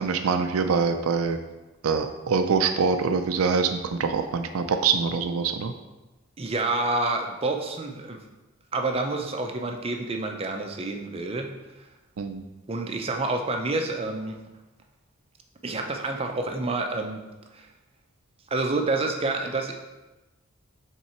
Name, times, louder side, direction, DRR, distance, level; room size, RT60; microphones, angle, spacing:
voice 1, 0.0-1.4 1.8-5.7 12.2-12.4, right 5 dB, 90° right, 7 dB, 0.4 m, -24 dB
voice 2, 6.4-8.2 8.7-11.5 11.8-11.9 12.7-14.4 15.6-17.2 17.5-17.7 18.5-19.8, right 2 dB, 25° right, 3 dB, 0.5 m, -28 dB
5.8 x 3.7 x 4.4 m, 1.1 s
head